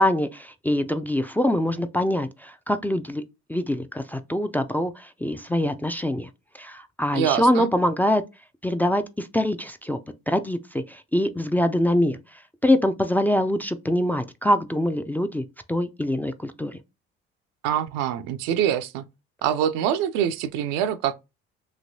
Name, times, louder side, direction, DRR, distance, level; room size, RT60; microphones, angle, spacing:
voice 1, 0.0-3.2 3.5-6.3 6.5-8.2 8.6-10.0 10.3-12.2 12.6-16.8, left 1 dB, 5° left, 0.3 m, -24 dB
voice 2, 7.1-7.7 17.6-19.1 19.4-21.1, right 10 dB, 70° right, 0.4 m, -25 dB
3.1 x 2.8 x 2.6 m
hypercardioid pair, 60°, 29 cm